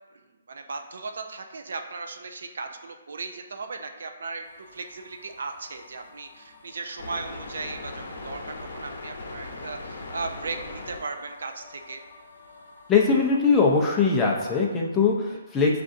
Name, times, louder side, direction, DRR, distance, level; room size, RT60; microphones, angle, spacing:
voice 1, 0.1-12.0, right 4 dB, 75° right, 5 dB, 0.5 m, -37 dB
sound 1, 4.4-14.6, left 2 dB, 60° left, 0.9 m, -42 dB
voice 2, 12.9-15.8, left 4 dB, 10° left, -2 dB, 0.5 m, -21 dB
6.6 x 2.5 x 2.6 m, 1.2 s
hypercardioid pair, 160°, 0 cm